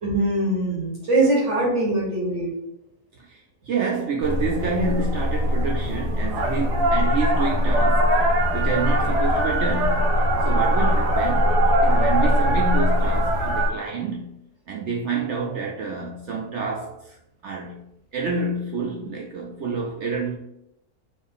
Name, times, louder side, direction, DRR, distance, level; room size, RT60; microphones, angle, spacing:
voice 1, 0.0-2.5, right 2 dB, 50° right, 1.1 m, -22 dB
voice 2, 3.2-8.2 8.5-10.1 10.4-14.4 14.7-17.2 17.4-17.8 18.1-20.4, right 4 dB, 70° right, 0.7 m, -28 dB
sound 1, 4.2-13.7, equal, 85° right, 1.4 m, -21 dB
4.0 x 2.6 x 3.5 m
omnidirectional pair, 1.6 m